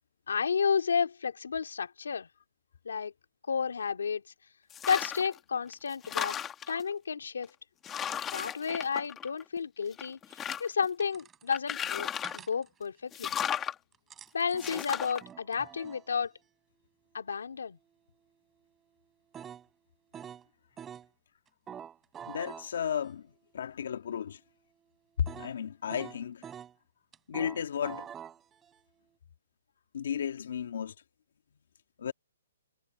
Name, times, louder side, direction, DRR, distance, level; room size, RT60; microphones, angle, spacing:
voice 1, 0.3-2.3 2.8-3.1 3.5-4.2 4.9-6.4 6.7-7.5 8.3-13.4 14.3-16.3 17.1-17.8, left 6 dB, 85° left, 2.7 m, -32 dB
sound 1, 4.7-5.4 5.7-6.8 7.4-7.5 7.8-9.6 9.9-10.9 11.5-12.5 13.1-13.8 14.6-15.2, left 9 dB, 10° left, 1.5 m, -35 dB
sound 2, 10.3-10.4 11.0-11.5 12.2-12.7 13.9-16.1 19.3-19.7 20.1-20.5 20.8-21.1 21.7-23.1 25.3-25.6 25.9-26.7 27.1-28.8, right 8 dB, 10° right, 6.6 m, -46 dB
voice 2, 22.3-23.3 23.5-24.4 25.2-26.4 27.3-28.1 29.9-30.9 32.0-32.1, left 8 dB, 60° left, 2.1 m, -33 dB
hypercardioid pair, 165°, 0 cm